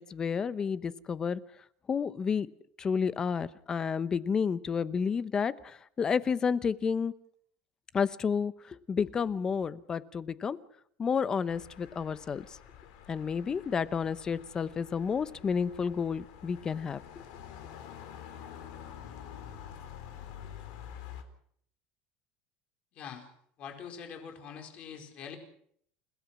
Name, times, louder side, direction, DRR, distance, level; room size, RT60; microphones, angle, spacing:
voice 1, 0.1-1.4 1.9-2.5 2.8-7.1 7.9-10.6 11.0-12.5 13.1-17.0, left 6 dB, 20° left, 16 dB, 0.8 m, -30 dB
sound 1, 11.5-21.2, left 9 dB, 85° left, 4.1 m, -48 dB
voice 2, 22.9-23.3 23.6-25.4, left 7 dB, 40° left, 4 dB, 4.7 m, -44 dB
29.5 x 17.0 x 6.2 m, 0.66 s
cardioid pair, 160°, 3 cm